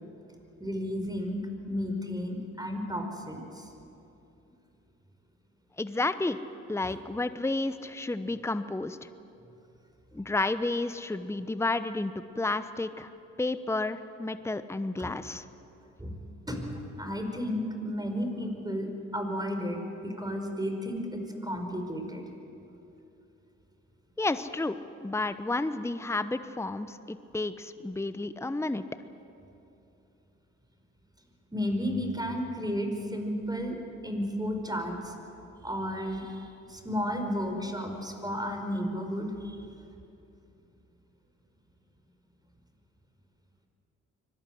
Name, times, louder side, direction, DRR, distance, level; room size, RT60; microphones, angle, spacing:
voice 1, 0.6-3.7 6.9-7.0 15.0-15.1 16.0-16.1 16.5-22.3 31.5-33.8 34.0-35.1 35.6-39.7, equal, 10° right, 4 dB, 5.1 m, -33 dB
voice 2, 5.8-6.4 6.7-9.0 10.1-13.1 13.4-15.4 24.2-28.8, left 2 dB, 10° left, 12 dB, 1.0 m, -31 dB
24.5 x 18.5 x 7.8 m, 2.8 s
hypercardioid pair, 45°, 34 cm